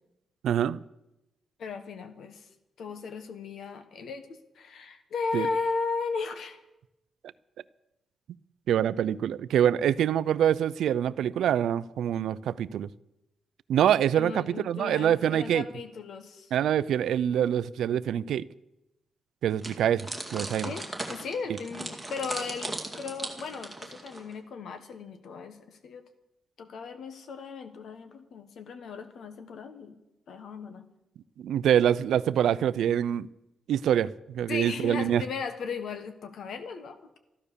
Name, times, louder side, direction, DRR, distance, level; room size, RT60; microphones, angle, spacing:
voice 1, 0.4-0.8 5.3-5.5 8.7-12.9 13.7-15.6 16.5-18.5 19.4-20.7 31.4-33.3 33.7-35.2, right 10 dB, 85° right, 0.4 m, -25 dB
voice 2, 1.6-2.5 2.8-6.6 14.1-16.5 20.6-26.0 26.6-30.0 30.3-30.9 34.5-37.2, left 4 dB, 65° left, 1.4 m, -36 dB
sound 1, 19.6-24.3, right 1 dB, ahead, 2.2 m, -38 dB
14.0 x 12.0 x 6.8 m
wide cardioid pair, 145°, 0 cm